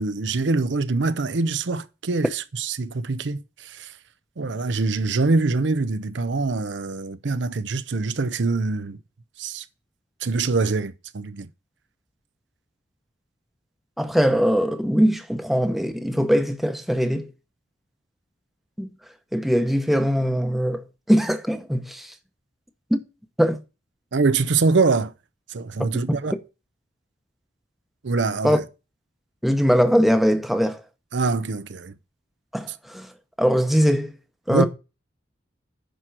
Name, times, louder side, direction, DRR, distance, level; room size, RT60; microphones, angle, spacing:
voice 1, 0.0-4.0 4.4-9.0 9.4-9.7 10.2-11.5 24.1-25.1 25.5-26.3 28.0-28.6 31.1-32.0 34.5-34.7, right 3 dB, 80° right, 0.7 m, -24 dB
voice 2, 14.0-17.3 18.8-18.9 19.3-22.1 22.9-23.0 23.4-23.6 25.8-26.2 28.4-28.6 29.4-30.8 32.5-33.1 33.4-34.1 34.5-34.7, equal, ahead, 0.9 m, -21 dB
10.5 x 4.5 x 6.2 m
head